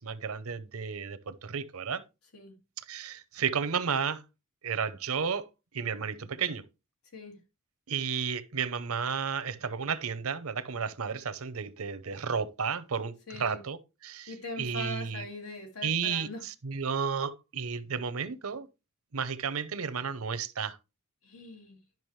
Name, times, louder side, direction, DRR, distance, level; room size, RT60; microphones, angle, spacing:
voice 1, 0.0-2.0 2.9-4.2 4.6-5.4 5.7-6.6 7.9-13.8 14.0-15.3 15.8-18.7 19.1-20.8, right 6 dB, 85° right, 0.8 m, -32 dB
voice 2, 13.3-13.6 14.3-16.4 21.2-21.8, left 1 dB, 90° left, 2.2 m, -41 dB
10.5 x 6.0 x 3.2 m
head